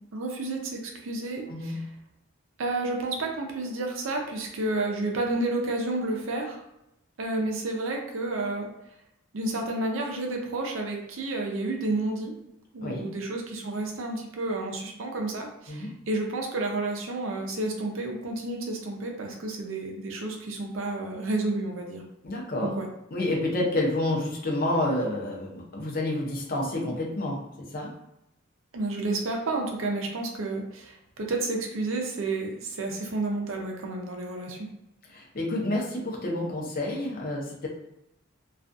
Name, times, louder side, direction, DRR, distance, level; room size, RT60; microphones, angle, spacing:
voice 1, 0.0-1.8 2.6-6.6 7.2-8.7 9.3-12.3 12.7-22.1 22.6-22.9 28.7-34.7, right 2 dB, 70° right, 1 dB, 0.5 m, -31 dB
voice 2, 1.5-1.8 12.8-13.1 15.7-15.9 22.2-22.8 23.1-27.9 35.1-37.7, left 1 dB, 45° left, -1 dB, 0.6 m, -29 dB
2.3 x 2.3 x 2.5 m, 0.84 s
head